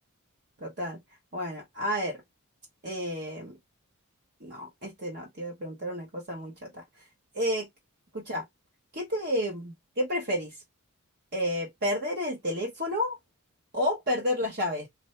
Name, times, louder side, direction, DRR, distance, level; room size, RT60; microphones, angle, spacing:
voice 1, 0.6-1.0 1.3-2.2 2.8-3.6 4.4-6.8 7.3-7.7 8.1-8.4 8.9-10.6 11.3-13.2 13.7-14.9, equal, 50° right, 1.1 m, -31 dB
3.2 x 2.7 x 4.3 m
head